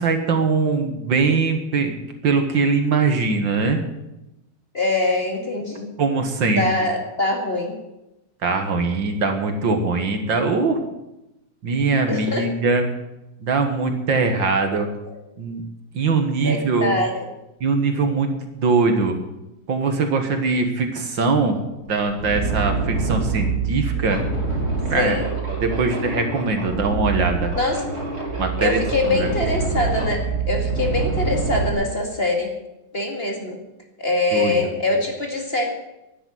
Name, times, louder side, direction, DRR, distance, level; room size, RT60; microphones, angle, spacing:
voice 1, 0.0-2.0 2.2-3.8 6.0-6.6 8.4-10.8 11.6-12.9 13.4-14.9 15.4-15.6 15.9-16.9 17.6-18.3 18.6-19.2 19.7-21.6 21.9-24.2 24.9-25.2 25.6-27.6 28.4-28.8 29.1-29.3 34.3-34.6, right 4 dB, 60° right, 5 dB, 2.2 m, -21 dB
voice 2, 4.7-5.9 6.5-7.8 12.1-12.5 15.0-15.2 16.4-17.1 24.9-25.3 27.5-27.9 28.6-32.5 32.9-33.6 34.0-35.7, left 2 dB, 30° left, 1 dB, 2.4 m, -23 dB
sound 1, 21.8-31.7, right 4 dB, 30° right, 3.5 m, -25 dB
12.0 x 10.0 x 9.3 m, 0.92 s
omnidirectional pair, 2.3 m